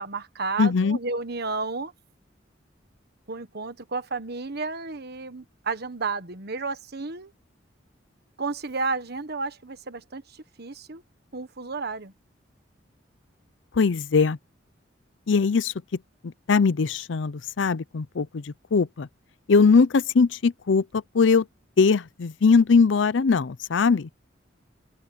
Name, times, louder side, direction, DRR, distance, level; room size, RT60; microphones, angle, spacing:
voice 1, 0.0-1.9 3.3-7.3 8.4-11.0 11.3-12.1, right 4 dB, 60° right, 1.5 m, -32 dB
voice 2, 0.6-1.0 13.7-14.4 15.3-15.7 16.2-19.1 19.5-21.5 21.8-24.1, left 5 dB, 75° left, 0.5 m, -21 dB
open air
head